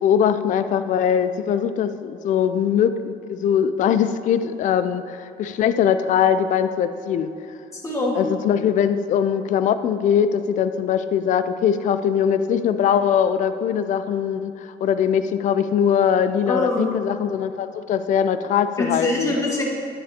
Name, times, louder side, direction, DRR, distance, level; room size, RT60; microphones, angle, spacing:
voice 1, 0.0-7.3 8.1-19.3, left 8 dB, 50° left, 11 dB, 0.4 m, -21 dB
voice 2, 7.7-8.2 16.5-16.9 18.8-19.6, left 2 dB, 20° left, -3 dB, 1.8 m, -24 dB
9.5 x 8.4 x 2.8 m, 2.3 s
cardioid pair, 110°, 17 cm